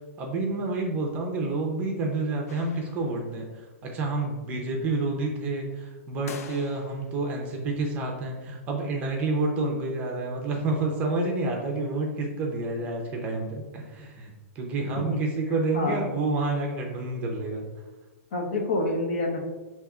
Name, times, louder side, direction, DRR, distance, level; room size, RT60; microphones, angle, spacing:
voice 1, 0.2-17.7, right 2 dB, 20° right, 0 dB, 0.6 m, -29 dB
sound 1, 2.5-3.4 6.3-7.3, left 5 dB, 85° left, 0.4 m, -45 dB
voice 2, 14.8-15.2 15.5-16.1 18.3-19.4, left 2 dB, 55° left, 0 dB, 1.0 m, -28 dB
6.6 x 2.8 x 2.3 m, 1.2 s
hypercardioid pair, 165°, 8 cm